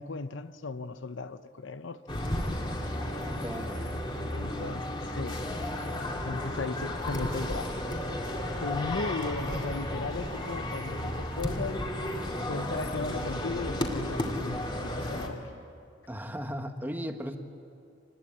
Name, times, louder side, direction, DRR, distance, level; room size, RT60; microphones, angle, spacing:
voice 1, 0.0-2.0 4.3-5.4 5.8-5.9 6.2-7.8 8.6-11.8 12.5-15.5, left 3 dB, 65° left, 0.7 m, -36 dB
sound 1, 2.1-15.3, left 1 dB, 25° left, 2.3 m, -33 dB
voice 2, 3.4-3.9 16.1-17.4, equal, 10° right, 1.2 m, -36 dB
26.5 x 20.5 x 8.5 m
head